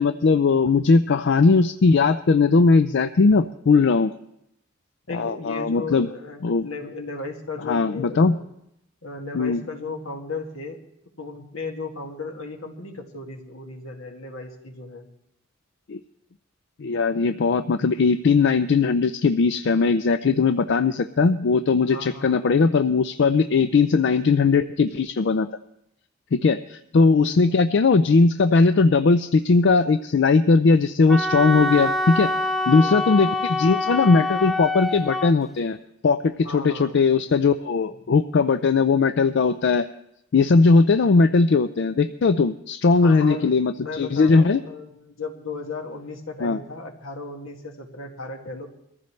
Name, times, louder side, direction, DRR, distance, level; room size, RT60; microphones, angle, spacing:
voice 1, 0.0-4.1 5.1-6.1 6.4-6.7 7.7-8.3 9.3-9.6 15.9-16.0 16.8-25.5 26.3-32.3 32.7-35.8 36.0-39.9 40.3-44.6 46.4-46.6, left 4 dB, 55° left, 11 dB, 0.4 m, -19 dB
voice 2, 5.1-8.4 9.0-10.8 11.2-15.1 21.9-22.7 27.1-27.4 32.8-33.1 36.4-37.1 43.0-48.7, left 3 dB, 80° left, 2 dB, 2.1 m, -35 dB
Wind instrument woodwind instrument, 31.1-35.3, left 2 dB, ahead, 0.5 m, -25 dB
22.5 x 14.5 x 3.2 m, 0.78 s
head